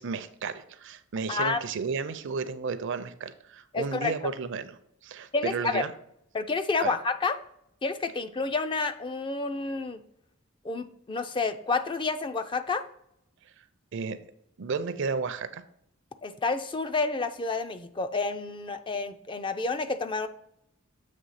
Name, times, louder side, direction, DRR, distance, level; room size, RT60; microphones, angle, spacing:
voice 1, 0.0-4.8 5.0-5.9 6.8-6.9 13.9-14.2 14.6-15.6, right 5 dB, 60° right, 12 dB, 0.5 m, -33 dB
voice 2, 1.3-1.6 3.7-4.1 5.3-5.8 6.3-7.3 7.8-10.0 10.6-12.8 16.2-20.3, left 3 dB, 25° left, 9 dB, 0.4 m, -29 dB
7.6 x 3.1 x 5.6 m, 0.74 s
head